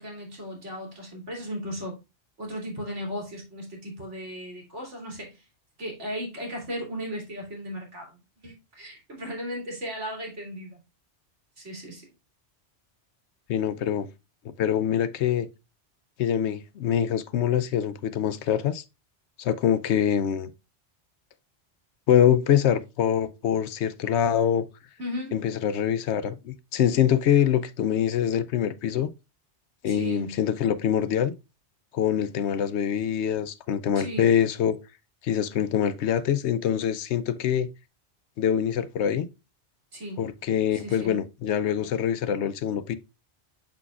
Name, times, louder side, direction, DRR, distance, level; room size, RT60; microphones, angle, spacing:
voice 1, 0.0-2.0 2.4-5.4 5.8-10.8 11.6-12.0 25.0-25.4 29.9-30.4 33.9-34.3 39.9-40.2 40.7-41.1, equal, 85° right, 3.0 m, -36 dB
voice 2, 13.5-14.1 14.4-15.5 16.2-18.8 19.4-20.5 22.1-24.6 25.3-29.1 29.8-31.3 31.9-34.8 35.2-37.7 38.4-39.3 40.2-43.0, left 9 dB, 75° left, 0.8 m, -24 dB
6.7 x 6.1 x 2.4 m
omnidirectional pair, 1.2 m